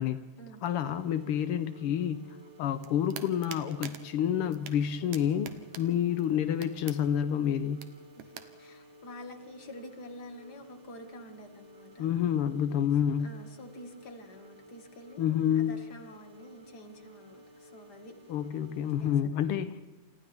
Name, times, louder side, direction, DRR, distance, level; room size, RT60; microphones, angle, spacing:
voice 1, 0.6-7.9 12.0-13.3 15.2-15.8 18.3-19.8, left 9 dB, 85° left, 11 dB, 1.2 m, -29 dB
sound 1, 0.7-19.2, right 1 dB, 40° right, 2.2 m, -55 dB
sound 2, 2.7-8.4, right 10 dB, 90° right, 2.6 m, -47 dB
voice 2, 8.6-12.1 13.2-18.1 19.0-19.1, left 1 dB, 35° left, 5 dB, 2.1 m, -48 dB
28.5 x 28.0 x 3.6 m, 1.1 s
omnidirectional pair, 3.6 m